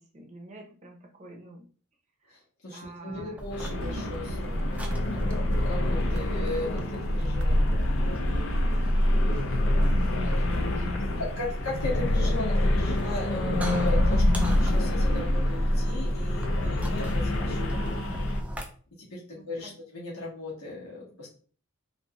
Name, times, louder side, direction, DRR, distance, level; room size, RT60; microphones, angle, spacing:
voice 1, 0.0-1.7 2.2-2.4 2.7-3.4 10.2-11.2 19.3-19.8, right 1 dB, 30° right, 1 dB, 0.7 m, -48 dB
voice 2, 2.3-4.7 5.6-7.7 11.2-17.8 18.1-18.2 19.0-21.3, left 2 dB, 85° left, -5 dB, 1.4 m, -37 dB
sound 1, 3.4-18.6, equal, 5° right, 0.3 m, -38 dB
sound 2, 3.5-18.4, left 1 dB, 60° left, 0.5 m, -26 dB
sound 3, 3.6-13.0, right 2 dB, 70° right, 0.4 m, -44 dB
4.0 x 2.6 x 2.3 m, 0.42 s
head